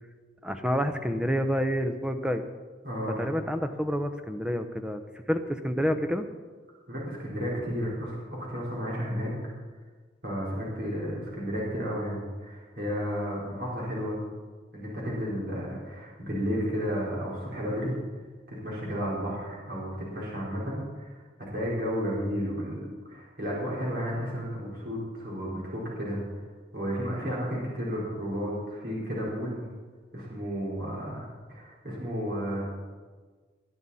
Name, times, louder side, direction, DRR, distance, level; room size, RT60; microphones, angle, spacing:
voice 1, 0.4-2.4 3.2-5.0 5.3-6.2, equal, 5° right, 7 dB, 0.7 m, -28 dB
voice 2, 2.8-3.3 6.9-9.5 10.2-14.2 14.7-17.9 18.5-21.2 21.5-26.4 26.7-29.6 30.1-32.7, equal, 55° right, -5 dB, 4.4 m, -32 dB
19.5 x 11.0 x 4.2 m, 1.4 s
head